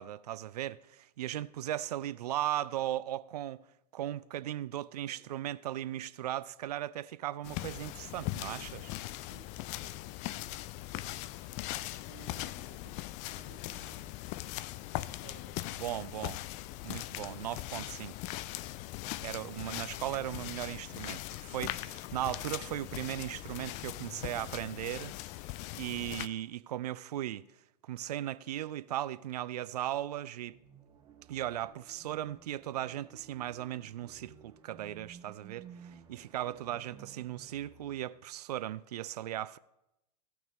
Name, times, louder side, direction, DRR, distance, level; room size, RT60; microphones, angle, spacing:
voice 1, 0.0-3.6 3.9-8.7 15.8-16.4 16.8-18.2 19.2-25.1 25.7-27.4 27.8-30.6 31.3-39.6, right 13 dB, 70° right, 0.4 m, -37 dB
voice 2, 5.0-6.0 7.5-7.7 8.4-8.8 9.3-10.6 12.0-13.0 13.3-14.5 15.0-15.7 21.6-22.2, right 10 dB, 50° right, 1.7 m, -59 dB
sound 1, 7.4-26.3, left 17 dB, 35° left, 0.4 m, -40 dB
sound 2, 30.4-38.1, right 7 dB, 25° right, 2.1 m, -55 dB
17.0 x 6.1 x 3.5 m
hypercardioid pair, 100°, 21 cm